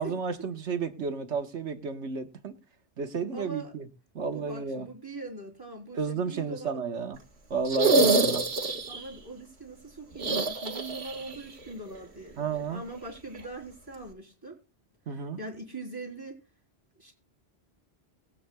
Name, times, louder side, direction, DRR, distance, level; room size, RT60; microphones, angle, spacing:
voice 1, 0.0-2.6 3.0-3.9 4.1-4.9 5.9-7.2 7.5-8.5 12.4-12.8 15.1-15.4, right 5 dB, 85° right, 1.6 m, -32 dB
voice 2, 3.3-3.7 4.3-6.8 8.9-14.6 15.1-16.4 17.0-17.1, right 2 dB, 20° right, 3.8 m, -42 dB
sound 1, 7.6-9.1 10.2-11.4 11.6-11.7 13.3-13.4, right 3 dB, 65° right, 1.9 m, -25 dB
21.5 x 8.6 x 2.3 m
omnidirectional pair, 1.2 m